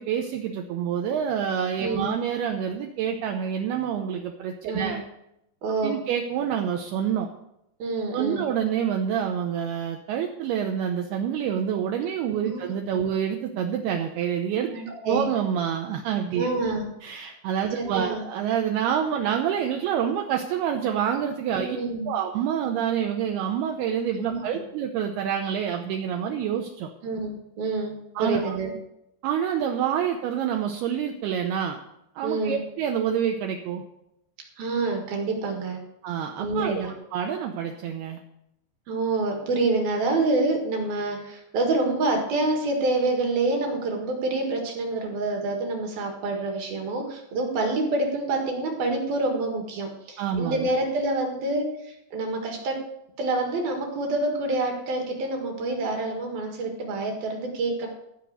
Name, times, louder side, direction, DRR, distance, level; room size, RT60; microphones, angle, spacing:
voice 1, 0.0-5.0 5.8-7.3 8.1-16.5 17.0-21.8 22.1-26.9 28.2-28.6 29.2-31.8 32.2-33.8 36.0-38.2 50.2-50.7, right 8 dB, 85° right, 3 dB, 2.3 m, -27 dB
voice 2, 1.8-2.1 4.7-5.0 5.6-6.0 7.8-8.5 12.4-12.7 12.9-13.1 14.7-15.3 16.4-16.9 17.2-17.3 17.7-18.2 21.5-22.1 24.2-24.5 27.0-28.7 32.2-32.6 34.6-35.8 36.4-36.9 38.9-52.8 53.2-57.9, right 2 dB, 60° right, 2 dB, 3.1 m, -27 dB
15.5 x 5.2 x 8.0 m, 0.82 s
omnidirectional pair, 5.6 m